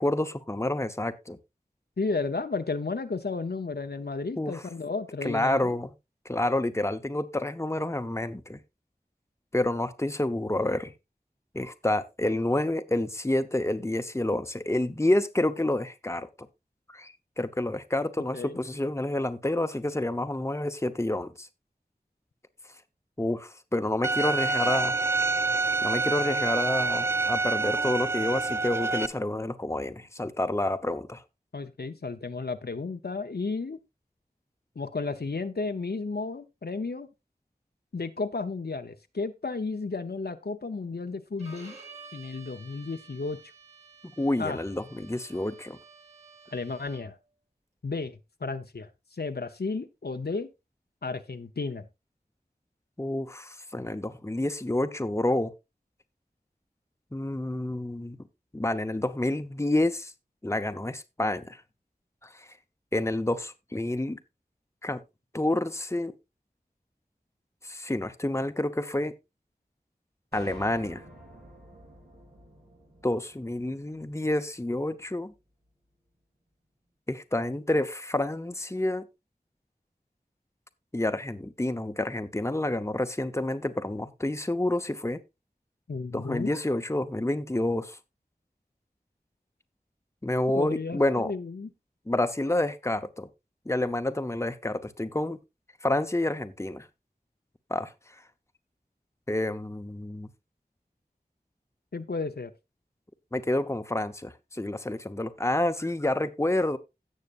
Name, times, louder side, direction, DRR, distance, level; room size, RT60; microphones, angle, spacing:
voice 1, 0.0-1.4 4.4-4.6 5.2-5.9 6.3-8.6 9.5-10.9 11.5-16.3 16.9-21.5 23.2-25.0 25.8-31.2 44.2-45.8 53.0-55.5 57.1-58.2 58.5-60.1 60.4-61.6 62.2-62.5 62.9-64.2 64.8-65.0 65.3-66.1 67.6-69.1 70.3-71.0 73.0-75.3 77.1-79.1 80.9-85.2 86.1-88.0 90.2-91.3 92.1-93.3 93.7-95.4 95.8-96.9 97.7-97.9 99.3-100.3 103.3-106.8, left 1 dB, 15° left, 0.8 m, -29 dB
voice 2, 2.0-5.8 18.3-18.6 31.5-33.8 34.8-37.1 37.9-41.8 42.1-43.4 44.4-44.6 46.5-47.2 47.8-50.5 51.0-51.9 85.9-86.5 90.5-91.7 101.9-102.5, left 3 dB, 75° left, 0.7 m, -33 dB
Bowed string instrument, 24.0-29.1, right 3 dB, 15° right, 0.5 m, -27 dB
Bowed string instrument 2, 41.4-47.2, right 5 dB, 40° right, 3.2 m, -51 dB
sound 1, 70.3-74.7, right 1 dB, 80° right, 2.9 m, -50 dB
16.5 x 6.5 x 2.5 m
wide cardioid pair, 40°, 17 cm